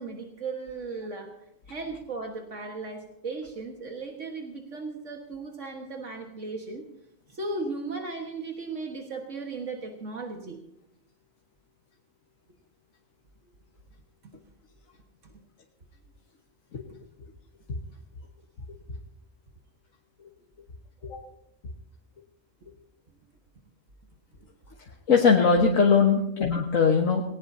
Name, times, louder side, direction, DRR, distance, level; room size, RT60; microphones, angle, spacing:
voice 1, 0.0-1.3 1.7-6.9 7.3-10.6, right 3 dB, 70° right, 2 dB, 1.9 m, -36 dB
voice 2, 25.1-27.2, left 5 dB, 85° left, 0 dB, 1.8 m, -21 dB
20.0 x 18.0 x 2.8 m, 0.81 s
omnidirectional pair, 1.3 m